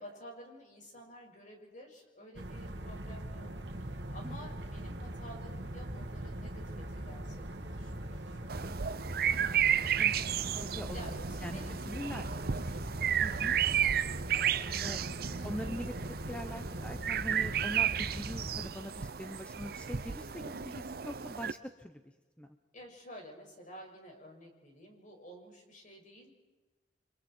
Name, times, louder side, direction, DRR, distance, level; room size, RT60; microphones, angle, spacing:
voice 1, 0.0-8.9 10.9-12.8 14.3-14.9 15.2-16.1 22.7-26.3, equal, 45° left, 1 dB, 5.9 m, -52 dB
sound 1, 2.3-18.7, right 1 dB, 80° right, 2.2 m, -41 dB
sound 2, 8.5-21.5, right 9 dB, 60° right, 0.7 m, -33 dB
voice 2, 9.3-11.1 11.4-12.3 13.2-13.6 14.8-15.0 15.4-15.9 16.3-22.0 22.4-22.5, equal, 5° left, 6 dB, 1.0 m, -43 dB
30.0 x 25.0 x 4.6 m, 1.2 s
head